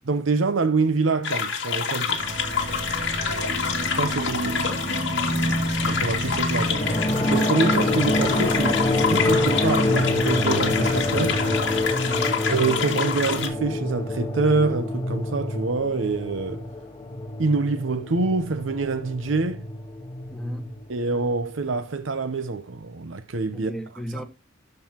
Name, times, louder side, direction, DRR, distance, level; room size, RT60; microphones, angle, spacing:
voice 1, 0.1-2.2 3.6-4.6 5.8-6.9 7.3-11.4 12.5-16.7 17.4-19.6 20.9-23.7 24.1-24.2, right 3 dB, 80° right, 0.8 m, -26 dB
sound 1, 1.2-13.5, left 6 dB, 65° left, 2.3 m, -27 dB
sound 2, 2.1-12.8, right 1 dB, 65° right, 2.7 m, -31 dB
sound 3, 6.6-21.5, left 1 dB, 25° left, 1.3 m, -26 dB
voice 2, 12.0-12.4 20.3-20.8 23.5-24.2, equal, ahead, 1.3 m, -34 dB
13.5 x 5.5 x 2.9 m
head